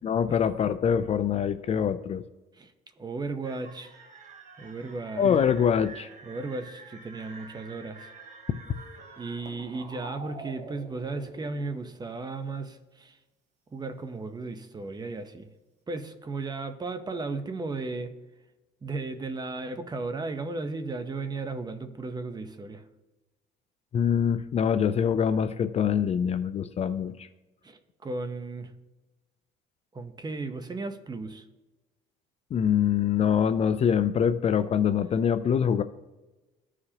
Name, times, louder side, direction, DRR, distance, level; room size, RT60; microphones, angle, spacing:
voice 1, 0.0-2.2 5.2-6.1 23.9-27.3 32.5-35.8, left 8 dB, 40° left, 0.4 m, -24 dB
voice 2, 2.5-4.0 4.6-5.3 6.3-8.1 9.2-13.2 13.7-15.5 15.9-18.2 18.8-22.9 27.6-28.7 29.9-31.4, right 3 dB, 25° right, 0.8 m, -35 dB
sound 1, 3.4-11.8, right 3 dB, 45° right, 1.3 m, -47 dB
14.5 x 4.9 x 2.9 m
cardioid pair, 110°, 17 cm